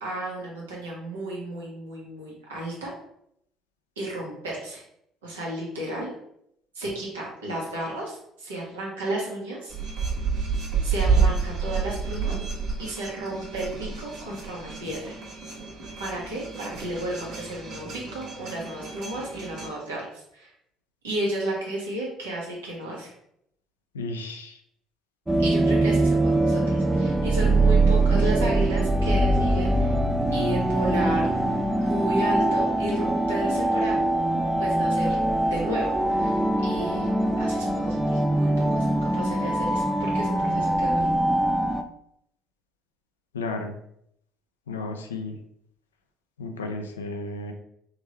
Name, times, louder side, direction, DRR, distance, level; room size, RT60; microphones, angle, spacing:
voice 1, 0.0-2.9 4.0-4.8 5.2-6.1 6.7-9.7 10.8-12.5 12.8-15.2 16.0-20.5 21.0-23.1 25.4-30.0 30.3-34.0 34.6-35.2 35.5-37.1 37.4-41.1, right 1 dB, 85° right, -4 dB, 1.2 m, -33 dB
sound 1, 9.7-19.7, right 5 dB, 60° right, 1.3 m, -29 dB
voice 2, 23.9-24.6 43.3-43.8 44.7-45.4 46.4-47.5, left 2 dB, 85° left, 5 dB, 0.4 m, -33 dB
sound 2, 25.3-41.8, right 2 dB, 15° right, 0.4 m, -23 dB
3.6 x 3.0 x 3.1 m, 0.74 s
hypercardioid pair, 55°, 0 cm